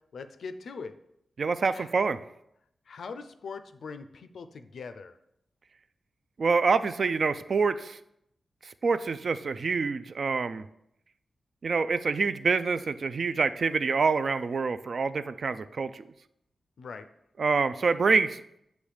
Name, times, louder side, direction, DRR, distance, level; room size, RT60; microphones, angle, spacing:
voice 1, 0.1-0.9 1.7-1.9 2.9-5.1 16.8-17.1, left 5 dB, 80° left, 10 dB, 0.4 m, -41 dB
voice 2, 1.4-2.2 6.4-8.0 8.8-10.6 11.6-16.0 17.4-18.4, right 4 dB, 55° right, 12 dB, 0.3 m, -26 dB
8.2 x 3.1 x 4.9 m, 0.78 s
wide cardioid pair, 125°, 0 cm